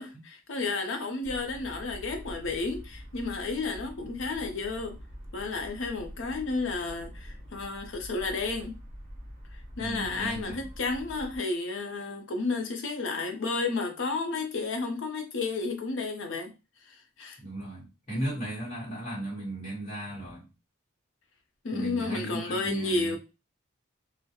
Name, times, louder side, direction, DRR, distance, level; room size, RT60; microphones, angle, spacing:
voice 1, 0.0-5.0 5.3-8.7 9.8-16.5 16.9-17.4 21.6-23.2, left 3 dB, 60° left, 0.5 m, -32 dB
sound 1, 1.2-11.4, equal, 35° right, 0.8 m, -45 dB
voice 2, 9.8-10.7 17.4-20.5 21.7-23.2, right 1 dB, 30° left, 1.1 m, -36 dB
2.3 x 2.0 x 2.8 m
head